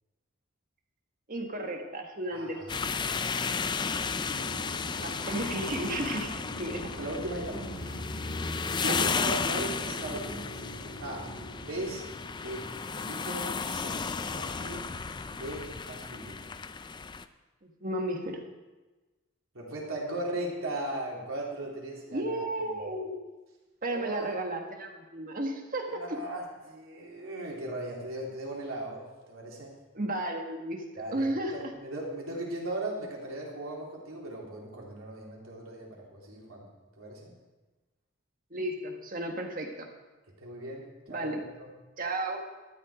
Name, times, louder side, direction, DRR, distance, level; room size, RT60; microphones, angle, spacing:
voice 1, 1.3-2.6 5.0-7.0 8.8-9.1 17.6-18.4 22.1-23.2 23.8-26.2 29.9-31.6 38.5-39.9 41.1-41.4 42.0-42.4, right 1 dB, 40° right, 3 dB, 1.5 m, -33 dB
voice 2, 2.3-2.8 5.3-5.4 6.6-6.7 6.9-7.6 8.8-10.5 11.0-11.3 11.7-12.1 12.4-14.0 14.3-14.8 15.3-16.4 19.5-22.7 23.9-24.3 26.0-29.7 31.0-36.7 37.0-37.3 40.4-41.3 41.6-41.7, right 1 dB, 85° right, -3 dB, 3.5 m, -38 dB
sound 1, 2.7-17.2, left 5 dB, 20° left, 0.3 m, -34 dB
sound 2, 3.9-12.9, right 1 dB, 50° left, 5.2 m, -44 dB
sound 3, 6.3-6.6 7.0-8.0 8.3-9.2 9.5-11.7, equal, ahead, 1.6 m, -49 dB
13.0 x 10.0 x 5.0 m, 1.2 s
head